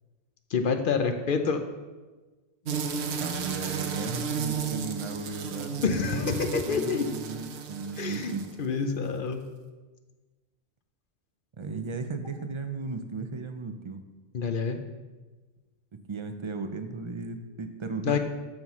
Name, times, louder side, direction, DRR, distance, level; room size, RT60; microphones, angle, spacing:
voice 1, 0.5-1.6 5.8-7.1 8.0-8.3 8.6-9.4 14.3-14.8 18.0-18.2, left 5 dB, 60° left, 7 dB, 0.7 m, -27 dB
sound 1, 2.6-8.7, right 6 dB, 80° right, 1.0 m, -33 dB
voice 2, 3.2-8.4 11.6-14.0 16.1-18.2, right 4 dB, 40° right, 8 dB, 0.5 m, -36 dB
13.0 x 5.5 x 3.1 m, 1.3 s
omnidirectional pair, 1.1 m